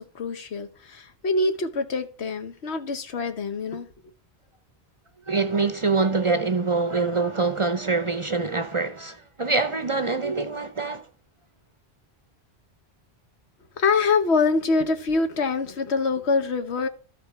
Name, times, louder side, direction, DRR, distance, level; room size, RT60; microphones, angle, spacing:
voice 1, 0.0-3.9 13.8-16.9, left 4 dB, 85° left, 1.3 m, -25 dB
voice 2, 5.3-11.0, right 3 dB, 35° right, 0.6 m, -25 dB
12.5 x 5.2 x 4.7 m
omnidirectional pair, 1.1 m